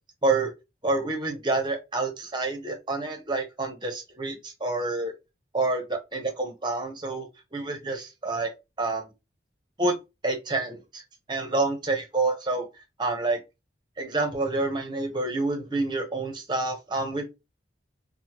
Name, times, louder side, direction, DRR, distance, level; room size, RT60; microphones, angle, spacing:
voice 1, 0.8-5.1 5.5-8.5 8.8-9.1 9.8-9.9 10.2-11.0 11.3-12.7 13.0-13.4 14.0-17.4, right 2 dB, 25° right, 0.8 m, -28 dB
3.3 x 2.1 x 2.8 m
head